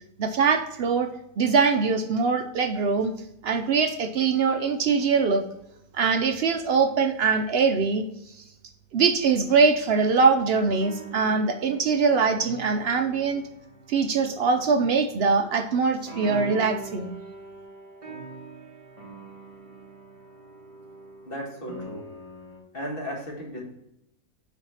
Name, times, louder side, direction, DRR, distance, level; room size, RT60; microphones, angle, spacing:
voice 1, 0.2-1.1 1.4-3.1 3.4-5.4 5.9-8.0 8.9-13.4 13.9-17.1, right 5 dB, 70° right, 6 dB, 0.5 m, -22 dB
sound 1, 10.0-22.6, right 3 dB, 20° right, 1.5 m, -43 dB
voice 2, 21.3-22.1 22.7-23.6, equal, 35° left, -1 dB, 1.9 m, -35 dB
5.8 x 4.4 x 5.5 m, 0.83 s
omnidirectional pair, 1.6 m